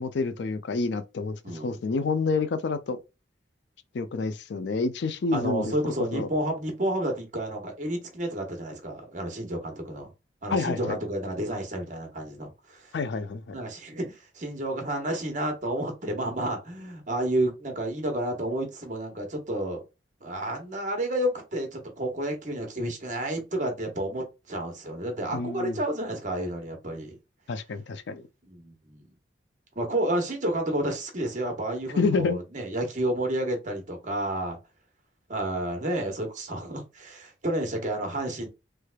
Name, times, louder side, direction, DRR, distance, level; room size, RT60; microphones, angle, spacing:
voice 1, 0.0-3.0 3.9-5.7 6.1-6.3 10.5-11.0 12.9-13.6 25.3-25.8 27.5-28.3 32.0-32.4, left 4 dB, 70° left, 0.4 m, -28 dB
voice 2, 1.4-1.8 5.3-10.1 10.4-12.9 13.5-19.8 20.2-27.2 28.4-29.1 29.8-34.6 35.3-38.5, right 1 dB, 45° right, 1.0 m, -30 dB
3.3 x 3.2 x 2.2 m
head